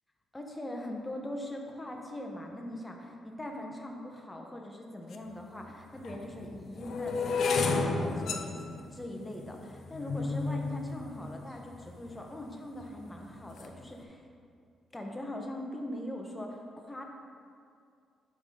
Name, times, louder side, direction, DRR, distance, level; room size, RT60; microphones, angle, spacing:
voice 1, 0.3-14.2 14.9-17.0, left 1 dB, 15° left, 1 dB, 1.1 m, -41 dB
sound 1, 5.1-5.2 6.0-12.1 12.8-13.2 13.4-13.8, left 4 dB, 60° left, 0.6 m, -32 dB
11.5 x 5.0 x 3.8 m, 2.3 s
cardioid pair, 110°, 0 cm